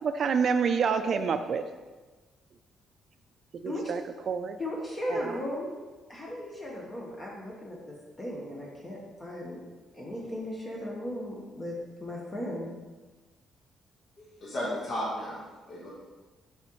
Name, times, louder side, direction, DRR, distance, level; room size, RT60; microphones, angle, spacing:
voice 1, 0.0-1.6 3.6-4.0 4.3-4.6 5.1-5.4, right 6 dB, 55° right, 9 dB, 0.4 m, -27 dB
voice 2, 4.6-5.7 6.1-9.6 9.9-12.7, left 1 dB, 25° left, -3 dB, 1.2 m, -36 dB
voice 3, 14.2-15.4 15.7-15.9, left 1 dB, 50° left, -6 dB, 1.5 m, -34 dB
6.8 x 4.9 x 3.1 m, 1.2 s
cardioid pair, 90°, 0 cm